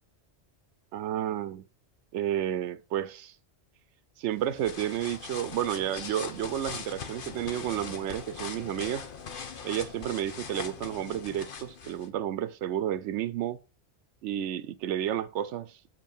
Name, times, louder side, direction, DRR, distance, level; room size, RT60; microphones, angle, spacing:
voice 1, 0.9-1.6 2.1-3.4 4.2-9.1 9.6-13.6 14.2-15.8, right 11 dB, 85° right, 0.9 m, -31 dB
sound 1, 4.3-12.1, left 6 dB, 50° left, 1.1 m, -41 dB
7.4 x 5.5 x 5.4 m
omnidirectional pair, 1.2 m